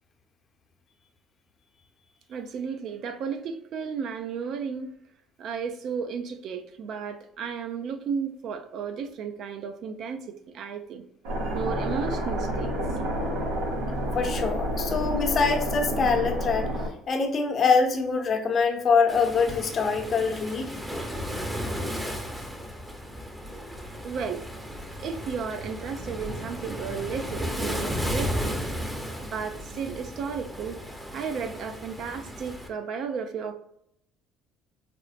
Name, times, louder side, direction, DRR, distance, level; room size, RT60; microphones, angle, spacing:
voice 1, 2.3-4.9 5.4-11.0 11.5-12.7 24.0-24.4 25.0-28.6 29.2-30.8 31.1-33.5, right 6 dB, 60° right, 0.4 m, -33 dB
sound 1, 11.2-16.9, equal, 90° right, 0.9 m, -29 dB
voice 2, 14.1-16.7 17.1-20.7, left 5 dB, 45° left, 0.7 m, -24 dB
Waves surf, 19.1-32.7, equal, 5° right, 0.7 m, -34 dB
4.3 x 2.1 x 2.4 m
supercardioid pair, 80°, 0 cm